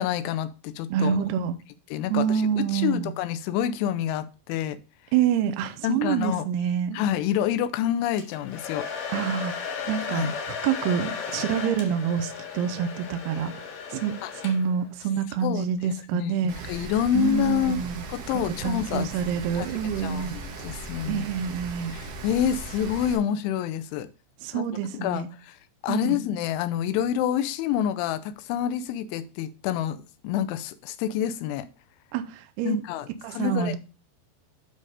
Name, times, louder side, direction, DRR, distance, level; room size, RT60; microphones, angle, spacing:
voice 1, 0.0-1.2 1.9-2.2 2.6-4.8 5.8-6.5 6.9-8.9 10.1-10.3 14.2-14.3 15.4-15.7 16.1-16.3 16.7-17.8 18.1-19.1 19.6-19.7 20.0-20.3 20.6-21.2 21.9-24.1 24.5-24.6 24.9-25.2 25.8-30.0 30.2-31.7 32.7-33.1 33.3-33.8, left 10 dB, 80° left, 3.0 m, -27 dB
voice 2, 0.9-1.6 2.1-3.1 5.1-7.0 9.1-9.5 9.9-13.6 13.9-18.0 18.3-20.4 21.1-22.0 24.4-25.3 25.9-26.2 32.1-32.8 33.2-33.8, right 8 dB, 80° right, 2.4 m, -27 dB
Domestic sounds home sounds, 8.2-14.9, left 6 dB, 60° left, 2.6 m, -35 dB
Rain, 16.5-23.2, right 3 dB, 60° right, 2.3 m, -38 dB
9.7 x 4.0 x 4.9 m
omnidirectional pair, 5.5 m